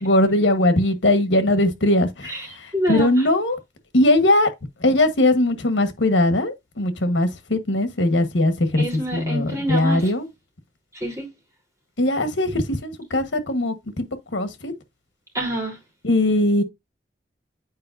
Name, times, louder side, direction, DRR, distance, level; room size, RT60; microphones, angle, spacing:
voice 1, 0.0-2.3 2.6-3.6 3.9-4.5 4.8-10.3 12.0-14.0 14.3-14.7 16.0-16.6, left 1 dB, 80° left, 1.4 m, -20 dB
voice 2, 2.7-3.2 8.8-10.0 10.9-11.3 15.3-15.8, right 1 dB, 15° right, 3.6 m, -26 dB
8.8 x 4.7 x 2.6 m
head